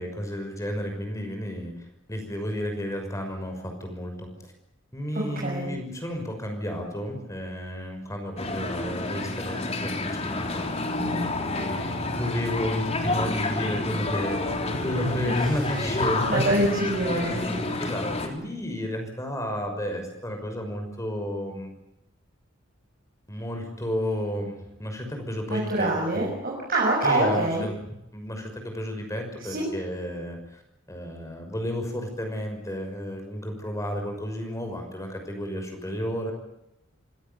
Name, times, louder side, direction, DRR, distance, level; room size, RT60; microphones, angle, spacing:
voice 1, 0.0-4.5 4.9-10.7 11.2-16.4 17.0-21.7 23.3-26.3 27.0-30.6 30.9-36.3, equal, 15° left, 4 dB, 6.0 m, -32 dB
voice 2, 5.1-5.7 11.0-11.2 16.3-17.6 25.5-27.6 29.5-29.7, right 1 dB, 50° right, -3 dB, 6.4 m, -25 dB
sound 1, 8.4-18.3, left 2 dB, 35° left, 3.3 m, -29 dB
sound 2, 12.4-17.7, right 1 dB, 75° right, 7.8 m, -37 dB
27.0 x 17.5 x 8.4 m, 0.84 s
head